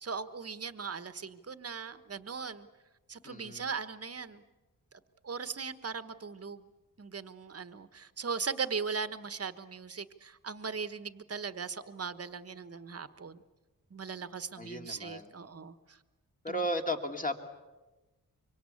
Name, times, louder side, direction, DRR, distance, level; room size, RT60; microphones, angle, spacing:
voice 1, 0.0-2.7 3.1-4.4 5.2-6.6 7.0-13.4 13.9-15.7 16.5-16.6, right 5 dB, 40° right, 12 dB, 1.3 m, -39 dB
voice 2, 3.2-3.7 14.6-15.3 16.4-17.4, equal, 20° left, 3 dB, 2.6 m, -35 dB
25.0 x 24.5 x 8.5 m, 1.1 s
wide cardioid pair, 105°, 36 cm